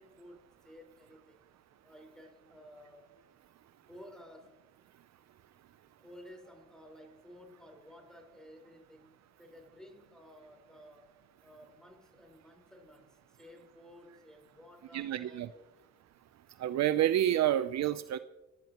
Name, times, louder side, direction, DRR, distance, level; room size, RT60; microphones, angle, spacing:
voice 1, 0.0-1.4 1.8-3.2 3.8-4.6 6.0-15.9, equal, ahead, 3 dB, 4.8 m, -55 dB
voice 2, 14.9-15.5 16.6-18.2, right 12 dB, 60° right, 13 dB, 0.6 m, -28 dB
27.0 x 15.0 x 3.0 m, 1.0 s
cardioid pair, 90°, 30 cm